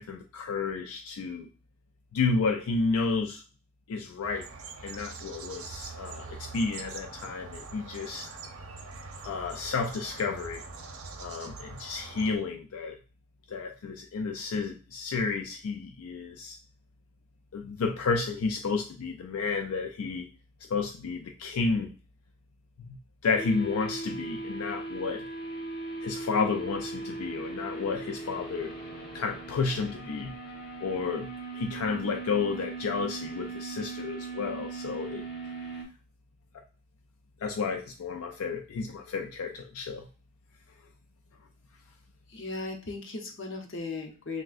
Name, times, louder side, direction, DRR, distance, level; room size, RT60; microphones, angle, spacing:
voice 1, 0.0-1.5 2.1-3.4 3.9-4.5 4.8-8.3 9.2-10.6 11.2-13.0 13.5-16.6 17.5-20.3 20.7-22.0 22.9-25.2 26.0-28.7 29.1-30.3 30.8-35.2 37.4-40.1, left 4 dB, 80° left, 4 dB, 0.4 m, -31 dB
sound 1, 4.2-12.4, right 4 dB, 80° right, 0.6 m, -43 dB
sound 2, 23.3-35.8, right 3 dB, 40° left, 1.1 m, -39 dB
voice 2, 42.3-44.4, left 3 dB, 55° left, 3 dB, 0.8 m, -37 dB
5.9 x 2.2 x 2.4 m, 0.36 s
head